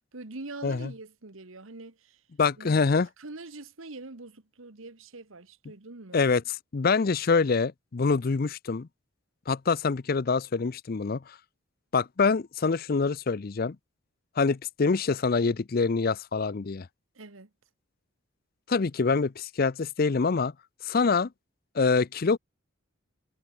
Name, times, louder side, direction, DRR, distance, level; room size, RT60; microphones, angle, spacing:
voice 1, 0.1-2.2 2.6-6.3 17.1-17.5, right 2 dB, 75° right, 1.6 m, -44 dB
voice 2, 2.4-3.1 6.1-8.9 9.5-11.4 11.9-13.8 14.4-16.9 18.7-20.5 20.8-21.3 21.7-22.4, left 4 dB, 45° left, 0.5 m, -25 dB
head